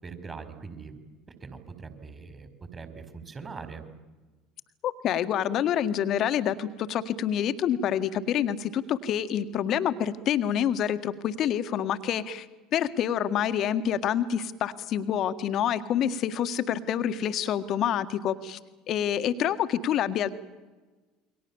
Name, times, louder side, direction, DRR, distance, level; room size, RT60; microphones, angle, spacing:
voice 1, 0.0-1.0 1.4-3.8, right 4 dB, 25° right, 9 dB, 4.7 m, -42 dB
voice 2, 4.8-12.5 12.7-18.6 18.9-20.3, left 9 dB, 50° left, 11 dB, 1.8 m, -27 dB
28.5 x 23.5 x 7.3 m, 1.2 s
hypercardioid pair, 70°, 0 cm